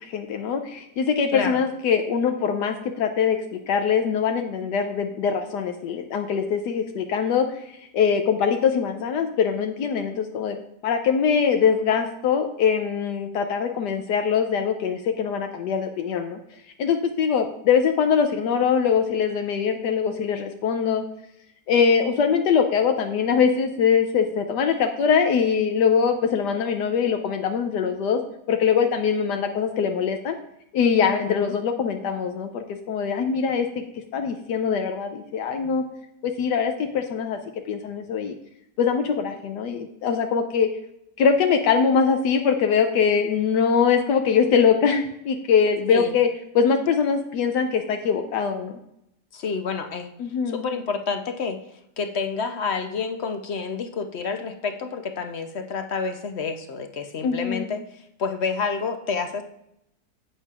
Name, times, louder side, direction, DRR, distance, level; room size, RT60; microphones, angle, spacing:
voice 1, 0.0-10.6 10.8-16.4 16.8-21.0 21.7-28.2 28.5-30.4 30.7-33.8 34.1-35.8 36.2-37.4 37.7-38.3 38.8-40.7 41.2-46.3 46.5-48.7 50.2-50.6 57.2-57.7, left 6 dB, 80° left, 5 dB, 1.3 m, -22 dB
voice 2, 1.3-1.6 31.2-31.5 45.9-46.1 49.3-50.1 50.5-51.6 52.0-59.4, left 5 dB, 55° left, 6 dB, 0.7 m, -29 dB
11.0 x 8.2 x 2.4 m, 0.79 s
omnidirectional pair, 1.8 m